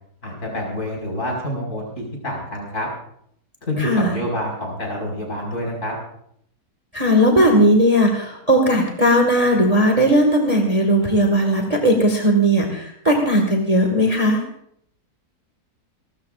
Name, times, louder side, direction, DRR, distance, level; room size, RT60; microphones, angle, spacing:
voice 1, 0.2-2.9 3.7-5.9, left 1 dB, 45° left, -1 dB, 5.9 m, -27 dB
voice 2, 3.8-4.2 6.9-14.4, equal, 20° right, 2 dB, 1.9 m, -17 dB
29.5 x 13.0 x 2.6 m, 0.69 s
omnidirectional pair, 1.8 m